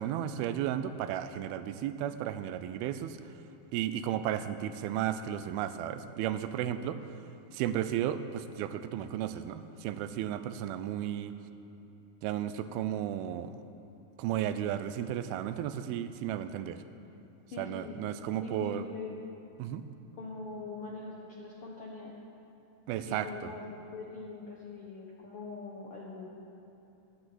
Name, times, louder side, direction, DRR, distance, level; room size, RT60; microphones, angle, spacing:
voice 1, 0.0-3.2 3.7-7.0 7.5-11.3 12.2-13.6 14.2-16.8 17.6-18.8 19.6-19.8 22.9-23.5, right 11 dB, 85° right, 11 dB, 2.5 m, -34 dB
voice 2, 17.5-18.0 18.4-19.2 20.2-22.1 23.0-26.3, left 3 dB, 65° left, -3 dB, 1.4 m, -42 dB
11.5 x 10.5 x 7.8 m, 2.9 s
omnidirectional pair, 4.4 m